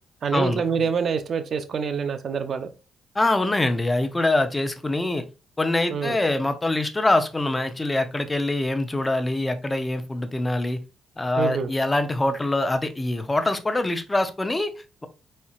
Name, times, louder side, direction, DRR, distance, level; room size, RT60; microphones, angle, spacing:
voice 1, 0.2-2.7 5.9-6.2 11.4-11.7, right 6 dB, 55° right, 0.7 m, -26 dB
voice 2, 3.1-5.2 5.6-10.8 11.2-15.1, left 2 dB, 15° left, 0.7 m, -24 dB
4.3 x 4.2 x 2.4 m
cardioid pair, 90°, 0 cm